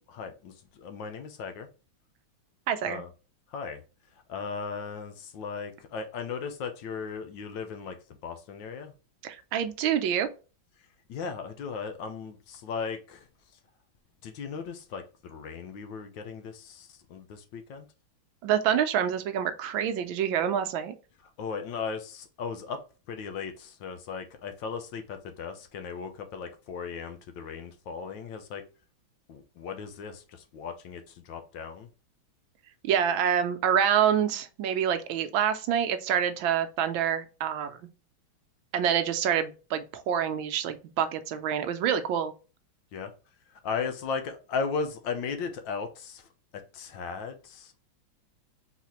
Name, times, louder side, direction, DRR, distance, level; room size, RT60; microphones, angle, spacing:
voice 1, 0.1-1.7 2.8-3.1 3.5-3.8 4.3-8.0 8.2-8.9 11.1-13.3 14.2-17.8 21.4-22.8 23.1-28.6 29.3-31.9 42.9-43.1 43.6-46.3 46.7-47.9, left 5 dB, 70° left, 1.4 m, -36 dB
voice 2, 2.7-3.0 9.2-10.3 18.4-20.9 32.8-37.8 38.7-42.3, right 9 dB, 75° right, 1.3 m, -27 dB
4.1 x 4.0 x 2.9 m
omnidirectional pair, 2.2 m